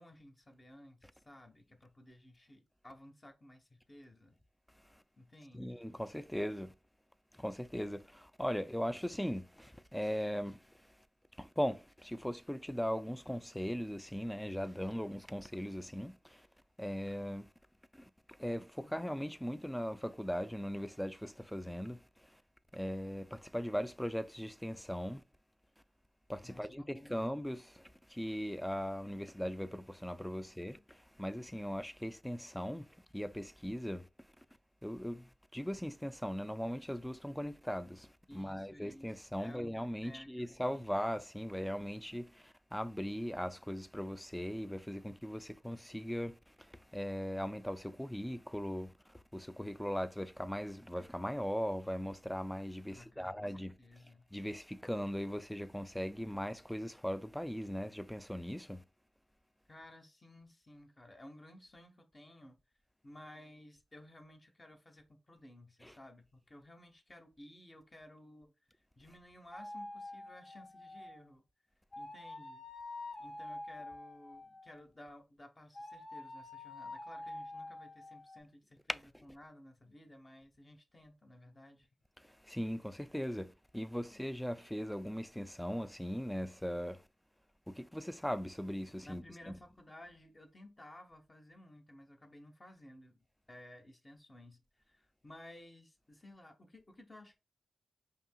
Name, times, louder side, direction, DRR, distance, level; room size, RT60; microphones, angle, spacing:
voice 1, 0.0-4.4 5.2-5.8 18.8-19.4 26.4-27.4 30.7-30.8 38.3-41.1 52.9-54.3 59.7-62.6 63.0-68.5 69.0-71.4 72.0-72.6 73.2-81.9 84.1-84.2 89.0-94.6 94.9-97.4, left 1 dB, 30° left, 0.9 m, -56 dB
voice 2, 5.5-6.7 7.3-10.7 11.4-16.5 16.8-17.5 17.9-18.1 18.4-22.0 22.7-25.2 26.3-34.1 34.8-38.1 38.3-53.7 54.3-58.8 65.8-65.9 78.9-79.2 82.2-87.0 87.7-89.5, equal, 5° left, 0.3 m, -39 dB
sound 1, 69.5-71.3 71.9-74.8 75.7-78.4, left 2 dB, 55° left, 1.4 m, -47 dB
5.1 x 2.8 x 2.2 m
wide cardioid pair, 90°, 0 cm